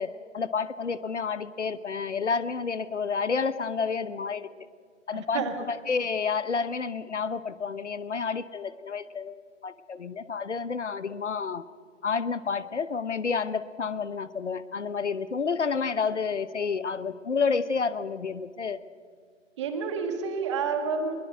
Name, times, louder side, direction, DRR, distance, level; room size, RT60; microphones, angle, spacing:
voice 1, 0.0-4.5 5.1-11.6 12.0-18.8, left 5 dB, 65° left, 16 dB, 1.0 m, -30 dB
voice 2, 5.1-5.5 19.6-21.1, right 5 dB, 25° right, 6 dB, 1.7 m, -29 dB
21.5 x 21.0 x 6.1 m, 2.1 s
figure-of-eight pair, 145°, 38 cm